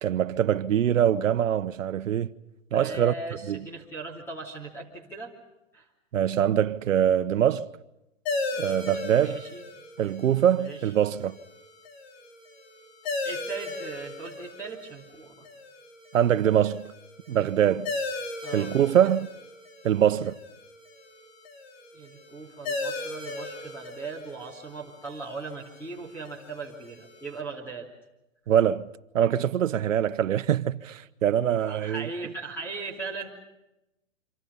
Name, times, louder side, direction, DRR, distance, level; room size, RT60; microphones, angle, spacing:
voice 1, 0.0-2.3 2.7-3.1 3.5-3.6 6.1-7.7 8.6-9.4 10.0-11.4 16.1-16.9 17.3-17.9 18.5-19.3 19.8-20.3 28.5-28.9 29.1-32.1, right 10 dB, 80° right, 1.2 m, -23 dB
voice 2, 2.7-5.3 5.7-5.9 9.2-9.6 10.6-10.9 13.2-15.5 17.4-17.5 18.4-18.7 21.9-27.9 31.6-33.3, right 3 dB, 5° left, 3.0 m, -39 dB
sound 1, 8.3-27.4, left 2 dB, 50° left, 3.7 m, -38 dB
27.5 x 26.0 x 5.5 m
hypercardioid pair, 150°, 39 cm